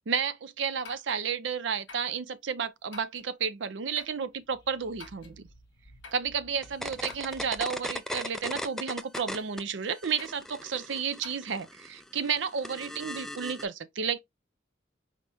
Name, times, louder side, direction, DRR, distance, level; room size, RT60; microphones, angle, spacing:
voice 1, 0.1-5.4 6.1-14.2, right 6 dB, 70° right, 0.5 m, -32 dB
sound 1, 0.8-1.2 1.9-2.1 2.9-3.3 4.0-4.2 5.0-5.4 6.0-6.3 7.1-7.5 8.1-8.4 9.1-9.5 10.2-10.4 11.2-11.4, left 4 dB, 70° left, 1.3 m, -48 dB
sound 2, 4.2-7.9, right 1 dB, 20° left, 1.6 m, -55 dB
sound 3, 6.6-9.6 9.9-13.7, left 1 dB, ahead, 0.4 m, -38 dB
4.9 x 3.4 x 2.7 m
head